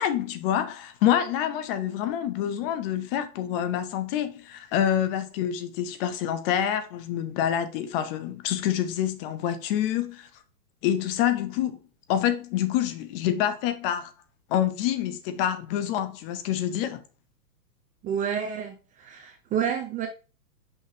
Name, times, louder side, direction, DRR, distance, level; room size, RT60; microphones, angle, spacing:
voice 1, 0.0-10.3 10.8-11.8 12.1-14.1 14.5-17.0, left 10 dB, 35° left, 1.1 m, -27 dB
voice 2, 18.0-20.1, right 8 dB, 15° right, 0.6 m, -29 dB
6.0 x 5.7 x 2.9 m
hypercardioid pair, 130°, 46 cm